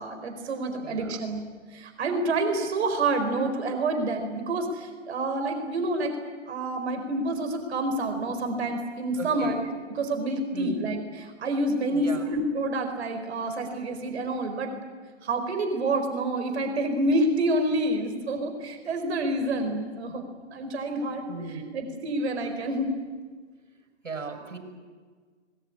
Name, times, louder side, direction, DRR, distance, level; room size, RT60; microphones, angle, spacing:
voice 1, 0.0-1.4 1.7-6.1 6.5-9.6 9.9-14.7 15.2-20.2 20.5-22.9, right 2 dB, 60° right, 6 dB, 4.6 m, -28 dB
voice 2, 0.8-1.2 9.2-9.6 10.5-10.9 11.9-12.2 21.3-21.8 24.0-24.6, right 4 dB, 80° right, 4 dB, 6.6 m, -37 dB
24.5 x 21.5 x 9.8 m, 1.5 s
figure-of-eight pair, 125°, 37 cm